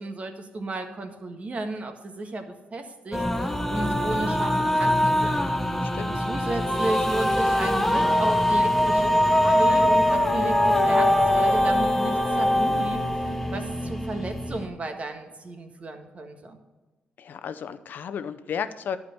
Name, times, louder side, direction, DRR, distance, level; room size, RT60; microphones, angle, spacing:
voice 1, 0.0-5.4 6.1-16.6, right 2 dB, 40° right, 5 dB, 1.5 m, -34 dB
sound 1, 3.1-14.7, left 1 dB, 5° left, 1.0 m, -23 dB
voice 2, 5.8-6.2 17.2-19.0, left 7 dB, 65° left, 11 dB, 0.6 m, -33 dB
11.5 x 5.0 x 6.7 m, 1.2 s
supercardioid pair, 65°, 3 cm